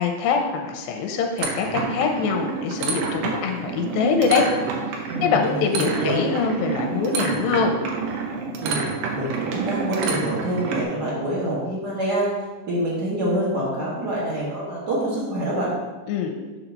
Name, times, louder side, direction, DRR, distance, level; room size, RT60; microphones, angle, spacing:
voice 1, 0.0-4.5 5.2-7.7 16.1-16.4, left 5 dB, 90° left, 4 dB, 2.4 m, -23 dB
sound 1, 1.4-10.8, right 5 dB, 85° right, 2.7 m, -28 dB
voice 2, 5.1-6.2 8.6-8.8 9.1-12.3 12.7-15.7, right 1 dB, 50° right, -6 dB, 1.2 m, -26 dB
6.4 x 4.0 x 5.8 m, 1.3 s
omnidirectional pair, 4.2 m